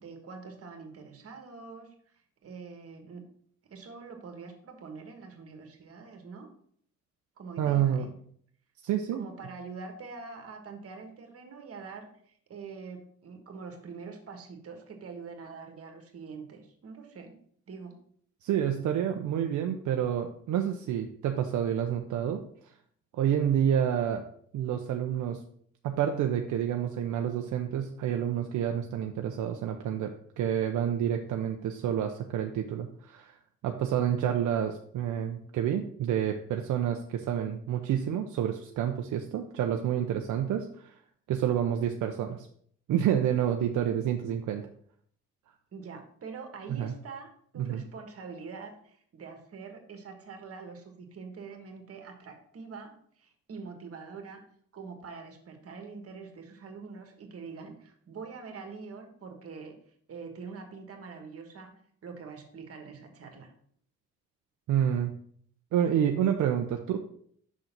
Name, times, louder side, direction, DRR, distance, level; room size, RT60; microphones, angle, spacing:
voice 1, 0.0-1.9 2.4-3.2 3.7-6.5 7.4-8.1 9.1-17.3 17.7-18.0 45.7-54.4 54.7-59.7 60.1-61.7 62.0-63.5, right 5 dB, 50° right, 5 dB, 1.5 m, -44 dB
voice 2, 7.6-8.0 8.8-9.2 18.4-22.4 23.2-24.2 24.5-25.4 25.8-33.4 33.6-40.9 41.3-42.5 42.9-44.7 46.8-46.9 47.6-47.8 64.7-65.1 65.7-67.0, right 9 dB, 75° right, 4 dB, 0.7 m, -28 dB
6.1 x 3.9 x 5.8 m, 0.62 s
cardioid pair, 90°, 30 cm